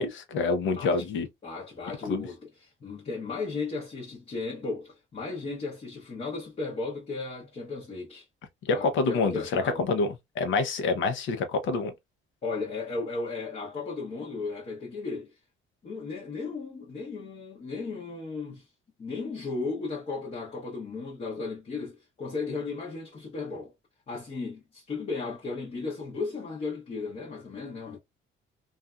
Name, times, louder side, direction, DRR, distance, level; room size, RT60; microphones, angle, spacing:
voice 1, 0.0-1.3 2.0-2.3 8.6-11.9, left 4 dB, 65° left, 0.8 m, -27 dB
voice 2, 1.4-8.2 8.7-9.8 12.4-15.3 15.8-18.6 19.0-23.7 24.1-28.0, left 4 dB, 30° left, 0.9 m, -35 dB
2.6 x 2.4 x 2.2 m
cardioid pair, 130°, 21 cm